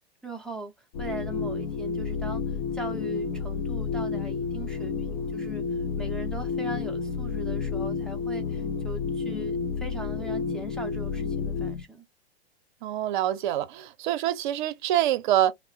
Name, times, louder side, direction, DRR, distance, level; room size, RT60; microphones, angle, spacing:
voice 1, 0.2-0.7 1.0-12.1, right 2 dB, ahead, 0.5 m, -40 dB
sound 1, 0.9-11.8, left 5 dB, 50° left, 0.6 m, -30 dB
voice 2, 12.8-15.5, right 12 dB, 50° right, 0.6 m, -25 dB
3.5 x 2.1 x 2.4 m
hypercardioid pair, 110°, 31 cm